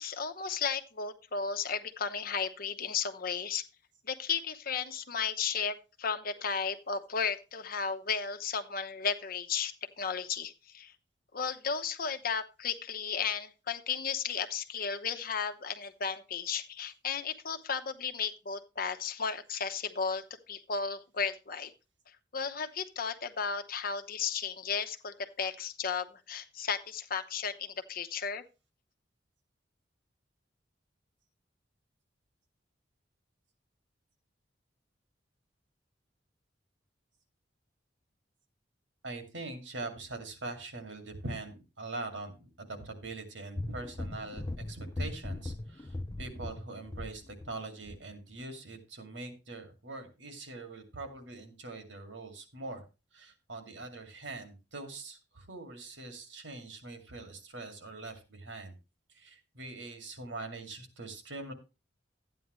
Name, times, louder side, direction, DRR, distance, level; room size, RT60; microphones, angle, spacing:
voice 1, 0.0-3.6 4.0-10.9 11.3-21.7 22.3-28.4, left 6 dB, 50° left, 7 dB, 0.9 m, -34 dB
voice 2, 39.0-52.8 53.1-58.8 59.1-61.5, right 2 dB, 85° right, 6 dB, 2.3 m, -43 dB
sound 1, 43.6-47.6 47.9-48.0, left 2 dB, 20° left, 0.4 m, -39 dB
12.5 x 9.2 x 3.1 m, 0.29 s
head